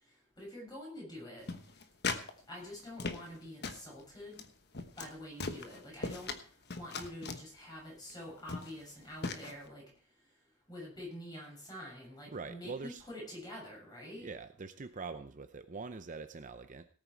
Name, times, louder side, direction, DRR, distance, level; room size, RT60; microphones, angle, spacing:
voice 1, 0.4-1.5 2.5-4.4 5.0-6.3 6.7-9.8 10.7-14.3, left 1 dB, 20° left, -2 dB, 7.2 m, -46 dB
sound 1, 1.5-2.3 2.6-3.4 3.6-3.9 4.3-4.5 4.7-5.1 5.4-6.4 6.7-7.4 8.1-8.2 8.5-8.8 9.2-9.5, left 4 dB, 50° left, 1.2 m, -38 dB
voice 2, 12.3-13.0 14.1-16.9, right 4 dB, 35° right, 10 dB, 0.6 m, -44 dB
18.0 x 8.8 x 4.6 m, 0.43 s
head